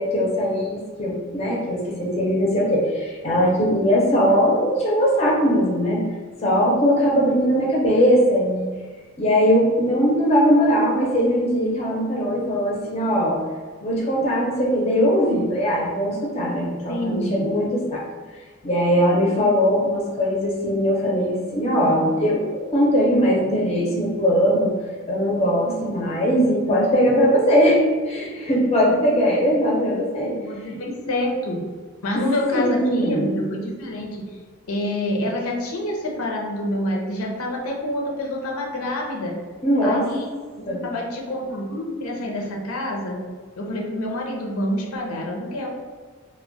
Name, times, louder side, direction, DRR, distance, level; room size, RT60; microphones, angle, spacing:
voice 1, 0.0-6.0 6.4-8.7 9.2-13.4 13.8-18.0 18.6-24.7 25.1-27.8 28.1-30.3 30.7-30.8 32.5-33.3 39.6-40.0 40.7-40.8, equal, 30° left, -3 dB, 0.5 m, -20 dB
voice 2, 16.9-17.6 30.4-31.6 32.0-34.1 34.7-39.4 39.8-40.3 40.6-43.2 43.6-45.7, left 1 dB, 90° left, -1 dB, 0.6 m, -27 dB
2.2 x 2.1 x 3.8 m, 1.5 s
head